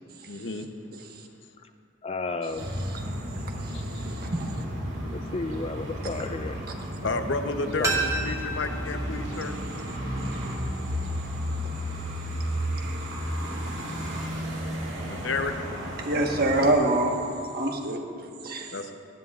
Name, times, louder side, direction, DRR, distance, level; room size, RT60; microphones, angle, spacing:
voice 1, 0.3-0.7 3.7-3.8 7.0-9.5 15.0-15.5 18.7-18.9, left 3 dB, 70° left, 6 dB, 0.8 m, -31 dB
voice 2, 2.0-2.7 5.1-6.6 7.8-7.9, left 3 dB, 30° left, 8 dB, 0.4 m, -32 dB
sound 1, 2.6-16.7, equal, 85° right, 2.0 m, -33 dB
voice 3, 4.0-4.5 12.7-12.9 16.0-18.7, right 1 dB, 50° right, 1 dB, 1.3 m, -26 dB
sound 2, 7.8-10.6 10.9-11.0, right 3 dB, 15° right, 1.4 m, -33 dB
18.5 x 13.0 x 2.4 m, 2.3 s
head